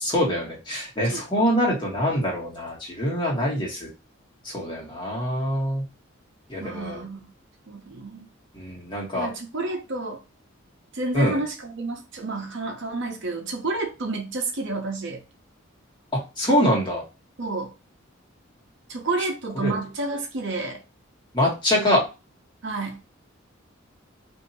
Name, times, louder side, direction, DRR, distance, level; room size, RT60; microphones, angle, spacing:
voice 1, 0.0-3.9 4.4-5.8 6.5-7.0 8.5-9.3 11.1-11.4 16.1-17.0 19.6-19.7 21.3-22.0, equal, 25° left, 1.5 m, -24 dB
voice 2, 6.6-7.3 7.7-8.3 9.1-10.2 10.9-15.2 17.4-17.7 18.9-20.8 22.6-23.0, right 2 dB, 65° right, 0.8 m, -30 dB
2.8 x 2.8 x 4.1 m
head